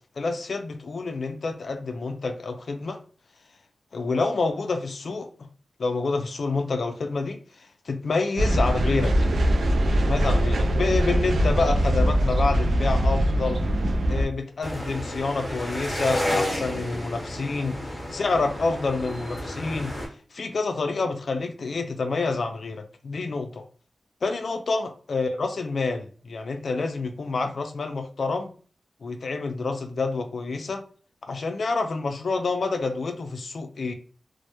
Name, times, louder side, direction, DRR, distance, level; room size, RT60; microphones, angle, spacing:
voice 1, 0.2-3.0 3.9-5.3 5.8-9.2 10.1-13.6 14.1-19.9 20.3-23.6 24.2-28.5 29.0-30.8 31.2-33.9, left 3 dB, 65° left, 6 dB, 0.3 m, -28 dB
sound 1, 8.4-14.3, equal, 75° right, 0.3 m, -22 dB
sound 2, 14.6-20.1, left 1 dB, 15° left, 0.9 m, -31 dB
2.1 x 2.1 x 2.7 m, 0.41 s
wide cardioid pair, 110°, 0 cm